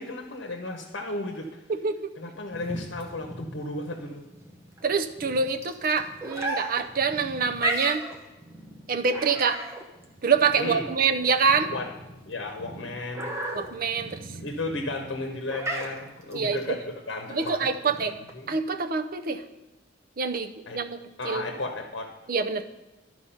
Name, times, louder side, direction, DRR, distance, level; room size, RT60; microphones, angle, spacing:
voice 1, 0.0-1.6 2.2-4.2 10.6-10.8 11.7-11.8 12.3-13.3 14.4-18.6 20.7-20.8 21.2-22.1, left 2 dB, 75° left, 4 dB, 0.9 m, -34 dB
voice 2, 1.7-2.1 4.8-8.0 8.9-9.6 10.2-11.7 13.5-14.2 16.3-16.8 17.3-18.1 18.5-19.4 20.2-21.0 21.2-21.5 22.3-22.6, right 5 dB, 50° right, 7 dB, 0.6 m, -26 dB
sound 1, 2.5-18.5, right 1 dB, 15° right, 0.9 m, -36 dB
12.0 x 4.7 x 5.6 m, 1.1 s
head